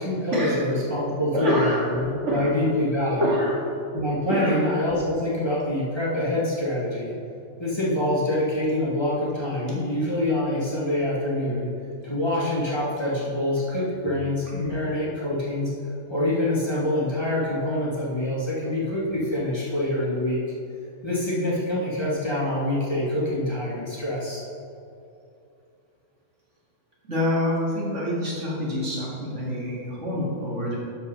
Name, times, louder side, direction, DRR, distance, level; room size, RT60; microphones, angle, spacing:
voice 1, 0.0-3.3 3.9-7.1 7.6-11.7 12.0-15.7 16.1-20.4 21.0-24.4, left 1 dB, 20° left, -7 dB, 2.0 m, -25 dB
voice 2, 1.3-1.8 2.3-2.5 3.2-3.6 4.2-4.6 27.1-30.8, equal, 65° right, -5 dB, 2.4 m, -26 dB
12.5 x 4.6 x 5.5 m, 2.6 s
omnidirectional pair, 1.3 m